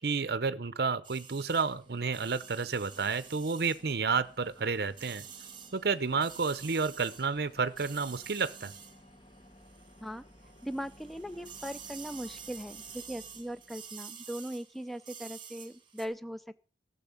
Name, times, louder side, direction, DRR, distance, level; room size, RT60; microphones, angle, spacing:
voice 1, 0.0-5.3 5.7-8.7, right 5 dB, 60° right, 16 dB, 0.7 m, -31 dB
sound 1, 1.0-10.1 10.4-16.1, right 7 dB, 30° right, 1.6 m, -49 dB
sound 2, 1.3-14.2, equal, 30° left, 1.3 m, -58 dB
voice 2, 10.6-16.6, equal, ahead, 13 dB, 0.5 m, -39 dB
14.0 x 7.0 x 7.0 m, 0.38 s
head